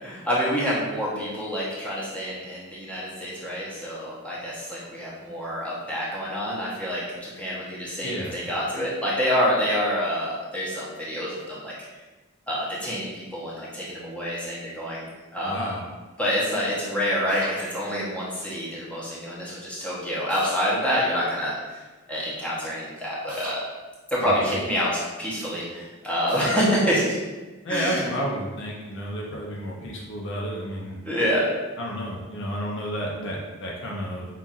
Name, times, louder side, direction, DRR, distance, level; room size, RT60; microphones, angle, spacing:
voice 1, 0.0-11.7 12.5-15.1 15.3-15.7 16.2-21.6 22.1-23.6 24.1-27.2 27.7-28.0 31.0-31.5, equal, 5° left, -8 dB, 0.8 m, -27 dB
voice 2, 8.0-8.4 15.4-15.9 24.2-24.6 27.6-31.0 31.8-34.3, equal, 55° left, -2 dB, 0.6 m, -31 dB
sound 1, 17.3-17.6 20.3-20.6 23.3-23.6 26.3-26.6, right 2 dB, 40° right, 0.8 m, -38 dB
5.5 x 2.5 x 2.5 m, 1.2 s
head